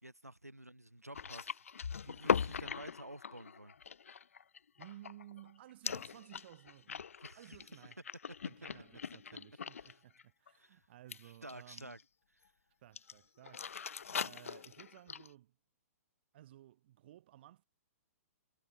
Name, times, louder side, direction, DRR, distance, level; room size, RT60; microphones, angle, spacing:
voice 1, 0.0-1.6 2.0-3.7 7.2-7.8 9.7-10.0 10.6-10.9 11.2-12.0 12.4-12.5, right 1 dB, 90° right, 1.4 m, -51 dB
sound 1, 1.1-5.5 5.8-9.9 10.2-10.5 11.1-12.0 13.0-13.1 13.4-15.3, left 6 dB, 65° left, 0.6 m, -40 dB
voice 2, 4.8-7.0 7.4-8.0 8.5-12.0 12.8-15.6 16.3-17.6, right 13 dB, 45° right, 1.7 m, -56 dB
figure-of-eight pair, 115°, 8 cm